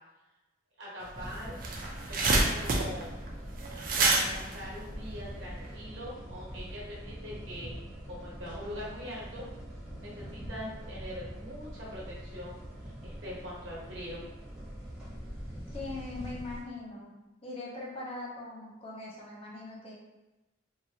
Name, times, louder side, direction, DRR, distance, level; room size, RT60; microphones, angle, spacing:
voice 1, 0.8-1.6 2.1-3.1 4.0-7.7 8.1-9.5 10.0-12.5 12.8-14.2, equal, 75° right, -5 dB, 1.1 m, -42 dB
sound 1, 1.1-16.6, equal, 5° right, 1.0 m, -43 dB
sound 2, 1.1-1.2 1.4-5.7, right 3 dB, 50° right, 0.4 m, -28 dB
voice 2, 15.7-17.1 17.4-19.9, left 2 dB, 30° left, -4 dB, 0.7 m, -41 dB
2.8 x 2.5 x 2.7 m, 1.0 s
head